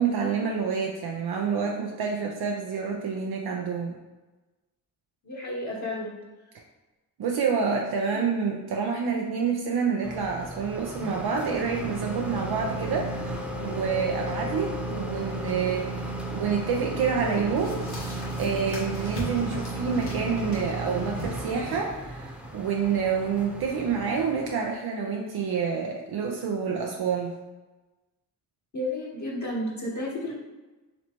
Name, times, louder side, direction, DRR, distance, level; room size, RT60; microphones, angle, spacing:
voice 1, 0.0-4.0 7.2-17.9 18.4-27.3, right 6 dB, 65° right, 0 dB, 0.6 m, -28 dB
voice 2, 5.2-6.1 8.1-8.2 28.7-30.3, left 1 dB, 45° left, -5 dB, 1.2 m, -32 dB
sound 1, 10.0-24.7, right 2 dB, 5° right, 0.9 m, -35 dB
Mallet percussion, 12.1-21.6, left 14 dB, 30° right, 0.8 m, -43 dB
sound 2, 17.6-23.3, equal, 65° left, 1.4 m, -41 dB
4.0 x 3.2 x 2.9 m, 1.1 s
cardioid pair, 50°, 41 cm